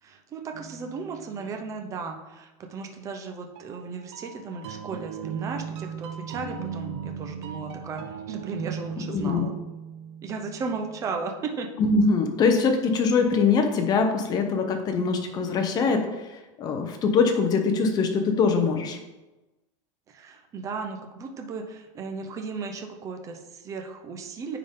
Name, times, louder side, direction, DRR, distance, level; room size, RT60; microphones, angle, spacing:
voice 1, 0.0-9.5 10.2-11.7 20.1-24.6, right 4 dB, 20° right, 4 dB, 0.6 m, -35 dB
sound 1, 0.5-1.7 3.5-11.2, right 7 dB, 60° right, 0.8 m, -38 dB
voice 2, 9.0-9.5 11.8-19.0, left 4 dB, 25° left, 5 dB, 0.8 m, -23 dB
9.4 x 3.8 x 3.7 m, 1.1 s
supercardioid pair, 160°, 15 cm